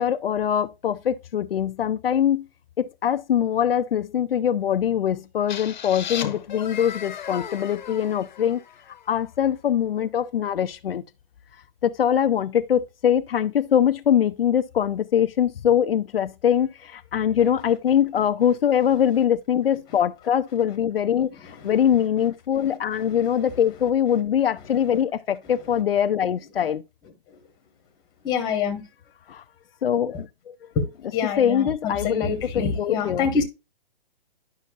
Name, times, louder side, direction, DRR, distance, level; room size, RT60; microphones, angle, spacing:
voice 1, 0.0-2.5 2.8-8.6 9.1-11.0 11.8-26.8 29.3-29.4 29.8-30.5 31.4-33.4, left 9 dB, 75° left, 0.6 m, -23 dB
sound 1, 5.5-9.2, left 8 dB, 50° left, 0.9 m, -36 dB
voice 2, 28.2-28.8 30.7-30.8 31.1-33.4, left 6 dB, 15° left, 1.1 m, -26 dB
10.5 x 5.6 x 2.4 m
hypercardioid pair, 155°, 29 cm